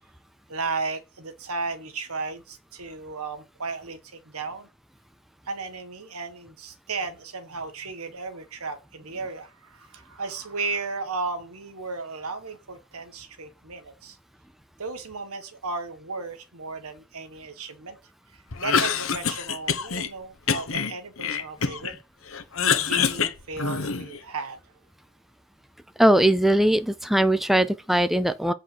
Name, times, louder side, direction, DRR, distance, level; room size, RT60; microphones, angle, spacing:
voice 1, 0.5-4.7 5.4-14.2 14.8-18.0 18.3-22.0 22.8-24.7, right 4 dB, 85° right, 1.7 m, -35 dB
Cough, 18.5-20.1 20.5-22.0 22.3-24.2, left 6 dB, 65° left, 1.1 m, -26 dB
voice 2, 26.0-28.5, right 1 dB, ahead, 0.4 m, -20 dB
8.3 x 4.8 x 6.2 m
head